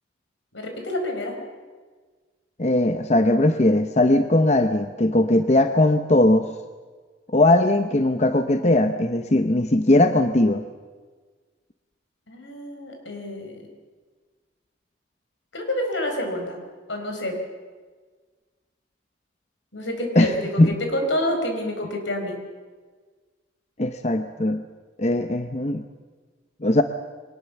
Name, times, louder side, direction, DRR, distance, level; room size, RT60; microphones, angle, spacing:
voice 1, 0.5-1.4 12.3-13.7 15.5-16.6 16.9-17.4 19.7-22.4, left 1 dB, 80° left, 4 dB, 4.7 m, -28 dB
voice 2, 2.6-6.5 7.3-10.6 20.2-20.3 20.6-20.7 23.8-24.6 25.0-25.8 26.6-26.8, left 1 dB, 35° left, 8 dB, 0.8 m, -19 dB
23.0 x 19.0 x 7.1 m, 1.4 s
head